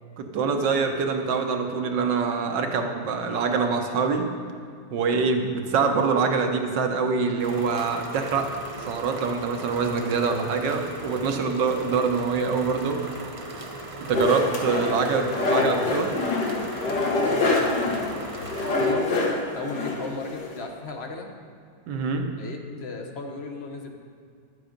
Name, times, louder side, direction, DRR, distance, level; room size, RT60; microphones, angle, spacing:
voice 1, 0.2-4.3 4.9-13.0 14.0-16.2 21.9-22.3, right 5 dB, 65° right, 4 dB, 1.6 m, -25 dB
sound 1, 7.4-18.9, right 2 dB, 45° right, 0.4 m, -38 dB
sound 2, 14.1-20.6, left 3 dB, 60° left, 1.9 m, -25 dB
voice 2, 16.8-19.3 19.5-21.3 22.4-24.0, left 3 dB, 45° left, 3 dB, 0.9 m, -36 dB
11.5 x 8.5 x 5.1 m, 2.2 s
omnidirectional pair, 2.1 m